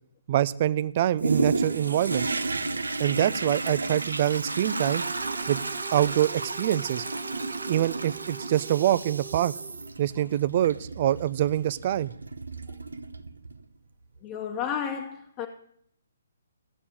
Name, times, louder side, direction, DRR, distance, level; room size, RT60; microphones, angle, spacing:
voice 1, 0.3-2.3 3.0-5.0 5.5-5.6 5.9-7.0 7.7-9.5 10.0-12.1, right 12 dB, 40° right, 0.5 m, -25 dB
Toilet flush, 1.2-13.6 14.2-14.3, right 3 dB, 85° right, 0.9 m, -32 dB
sound 1, 5.0-10.0, right 10 dB, 15° right, 1.6 m, -44 dB
voice 2, 14.2-15.5, left 8 dB, 25° left, 1.2 m, -32 dB
15.5 x 7.0 x 8.7 m
figure-of-eight pair, 135°, 0 cm